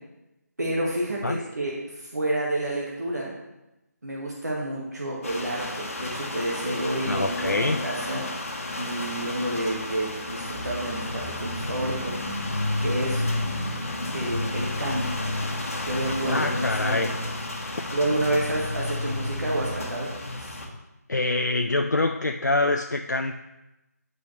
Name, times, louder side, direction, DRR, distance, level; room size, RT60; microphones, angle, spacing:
voice 1, 0.6-3.3 4.0-8.3 8.8-12.2 12.8-13.2 14.1-15.1 15.9-17.1 17.9-20.1 20.4-20.5, right 1 dB, 70° right, -3 dB, 1.8 m, -29 dB
sound 1, 5.2-20.7, left 1 dB, 55° left, 1.3 m, -31 dB
voice 2, 7.1-7.9 16.2-17.1 21.1-23.4, left 2 dB, 80° left, 5 dB, 0.4 m, -25 dB
9.7 x 5.4 x 3.2 m, 0.97 s
figure-of-eight pair, 155°, 9 cm